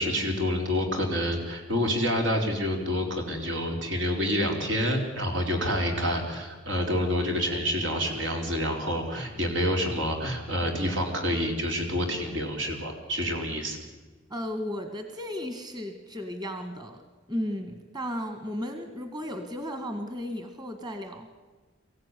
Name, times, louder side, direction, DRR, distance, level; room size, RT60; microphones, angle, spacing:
voice 1, 0.0-13.8, equal, 80° right, 3 dB, 4.5 m, -28 dB
voice 2, 14.3-17.0 17.3-21.3, equal, 20° right, 7 dB, 1.8 m, -34 dB
24.0 x 15.5 x 9.9 m, 1.4 s
head